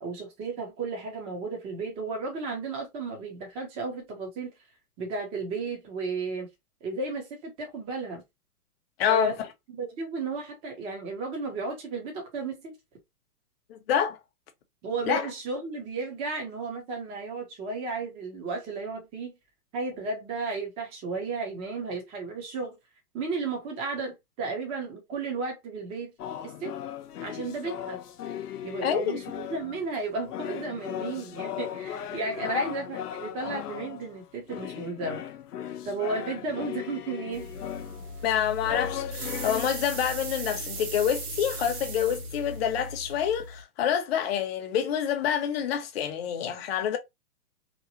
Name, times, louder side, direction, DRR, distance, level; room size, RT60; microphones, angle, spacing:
voice 1, 0.0-4.5 5.0-6.5 6.8-8.2 9.1-9.3 9.8-12.8 14.8-19.4 19.7-22.8 23.1-26.1 26.6-26.7 27.2-28.0 28.6-35.2 35.8-37.5 38.2-38.4, right 3 dB, 15° right, 0.5 m, -34 dB
voice 2, 9.0-9.3 13.7-14.2 15.1-15.3 28.8-29.2 32.5-32.7 38.2-47.0, left 9 dB, 45° left, 0.7 m, -27 dB
sound 1, 26.2-29.9 30.2-39.8, left 10 dB, 85° left, 0.7 m, -37 dB
sound 2, 37.3-43.6, right 1 dB, 70° right, 1.0 m, -37 dB
2.9 x 2.0 x 2.6 m
hypercardioid pair, 140°, 45 cm